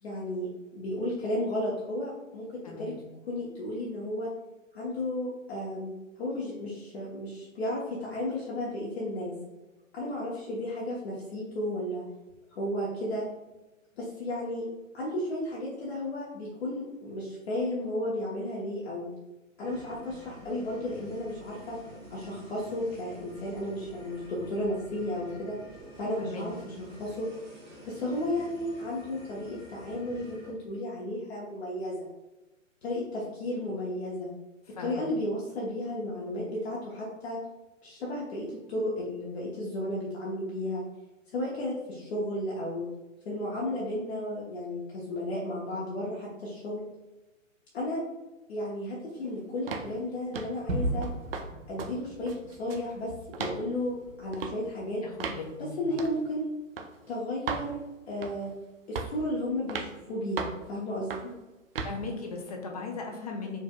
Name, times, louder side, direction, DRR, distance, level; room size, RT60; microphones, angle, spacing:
voice 1, 0.0-2.9 3.3-4.3 4.7-5.9 6.2-9.3 9.9-12.1 12.5-13.2 14.0-14.7 14.9-19.1 19.6-21.8 22.1-25.5 26.0-27.3 27.9-32.0 32.8-34.3 34.8-37.4 37.8-40.8 41.3-42.9 43.2-46.8 47.7-48.0 48.5-51.1 51.7-53.1 53.4-55.0 55.6-56.5 57.1-57.8 58.1-58.5 58.9-61.3, left 1 dB, 50° left, -6 dB, 1.0 m, -33 dB
voice 2, 2.6-3.0 26.2-26.5 34.8-35.1 55.0-56.0 61.8-63.6, left 4 dB, 30° left, 1 dB, 0.4 m, -38 dB
sound 1, 19.6-30.5, right 1 dB, 25° right, 1.2 m, -49 dB
sound 2, 49.7-49.9 50.3-50.6 51.0-51.5 51.8-51.9 52.3-52.9 53.3-53.6 54.3-54.6 55.2-55.4 56.0-56.2 56.8-56.9 57.5-57.7 58.2-58.5 59.0-59.2 59.7-59.9 60.4-60.6 61.1-61.3 61.8-62.0, right 5 dB, 50° right, 0.4 m, -35 dB
Gunshot gunfire / Fireworks / Boom, 50.7-55.5, right 1 dB, 80° right, 0.7 m, -37 dB
4.6 x 2.6 x 2.2 m, 1.1 s
figure-of-eight pair, 125°, 40 cm